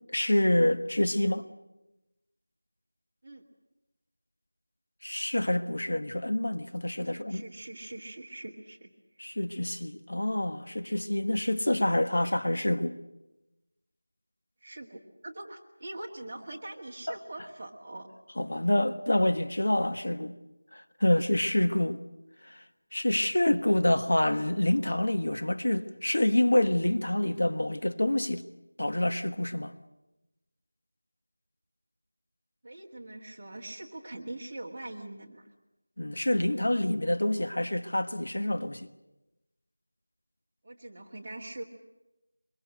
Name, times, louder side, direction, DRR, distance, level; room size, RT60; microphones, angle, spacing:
voice 1, 0.1-1.4 5.0-7.4 9.2-13.0 17.1-17.2 18.4-20.4 20.7-22.0 22.4-22.6 22.9-28.4 28.8-29.7 36.0-38.9, left 1 dB, 70° left, 1.3 m, -27 dB
voice 2, 7.0-8.9 14.6-18.1 32.6-35.4 40.6-41.6, right 2 dB, 20° right, 1.9 m, -42 dB
24.0 x 23.5 x 7.9 m
figure-of-eight pair, 180°, 0 cm